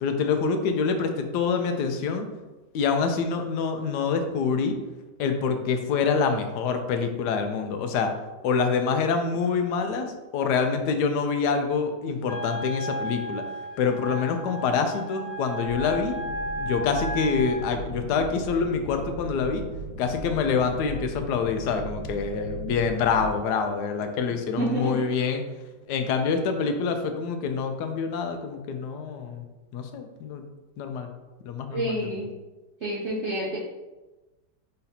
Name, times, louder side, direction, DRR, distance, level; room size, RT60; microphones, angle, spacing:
voice 1, 0.0-2.3 2.7-4.8 5.2-8.1 8.4-13.4 13.8-16.2 16.6-19.6 20.0-25.4 25.9-29.5 29.7-30.4 30.8-31.1 31.4-32.2, left 5 dB, 75° left, 6 dB, 1.1 m, -26 dB
Wind instrument woodwind instrument, 12.2-17.6, right 1 dB, 25° right, 0.9 m, -34 dB
sound 1, 15.6-23.4, right 2 dB, 55° left, 1.7 m, -37 dB
voice 2, 24.6-25.1 31.7-32.3 32.8-33.6, right 1 dB, 50° right, -6 dB, 0.9 m, -28 dB
4.3 x 4.0 x 2.7 m, 1.1 s
omnidirectional pair, 1.9 m